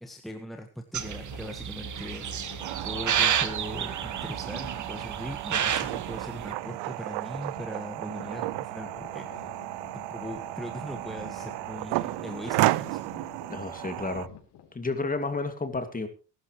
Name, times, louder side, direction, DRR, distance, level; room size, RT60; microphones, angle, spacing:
voice 1, 0.0-2.6 2.8-9.5 9.9-13.1, equal, ahead, 3 dB, 1.5 m, -40 dB
sound 1, 0.9-6.5, right 9 dB, 45° right, 1.4 m, -31 dB
sound 2, 1.0-14.8, left 8 dB, 75° left, 4.4 m, -49 dB
sound 3, 2.6-14.3, right 19 dB, 75° right, 0.6 m, -33 dB
voice 2, 13.5-14.3 14.7-16.1, left 3 dB, 20° left, 8 dB, 2.5 m, -31 dB
21.0 x 12.0 x 3.2 m, 0.35 s
cardioid pair, 115°, 42 cm